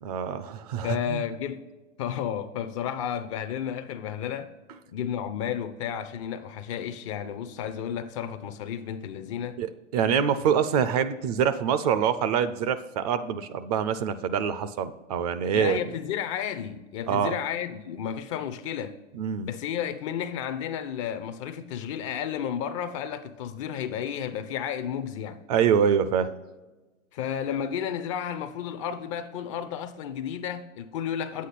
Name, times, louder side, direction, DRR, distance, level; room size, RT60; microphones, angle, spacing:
voice 1, 0.0-1.2 9.6-15.8 17.1-17.4 19.1-19.5 25.5-26.3, right 7 dB, 35° right, 0.4 m, -25 dB
voice 2, 0.8-1.7 2.0-4.5 4.9-9.6 15.5-19.0 19.4-25.4 27.1-31.5, left 9 dB, 25° left, 0.4 m, -32 dB
9.5 x 8.4 x 4.1 m
hypercardioid pair, 115°, 38 cm